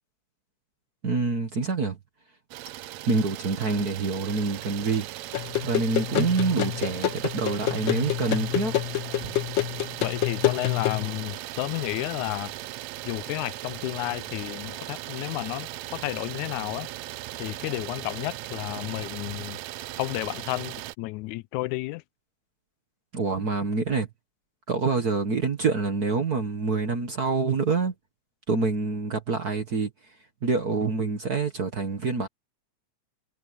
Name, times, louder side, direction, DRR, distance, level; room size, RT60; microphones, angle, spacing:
voice 1, 1.0-2.0 3.1-5.1 5.6-8.7 23.1-24.1 24.7-27.9 28.5-29.9 30.4-32.3, right 4 dB, 40° right, 1.5 m, -26 dB
Idling, 2.5-21.0, right 16 dB, 80° right, 1.9 m, -38 dB
sound 1, 5.3-11.1, left 12 dB, 55° left, 1.3 m, -28 dB
voice 2, 10.0-12.5 13.0-16.9 17.4-19.6 20.0-22.0, left 19 dB, 85° left, 1.9 m, -32 dB
omnidirectional pair, 3.4 m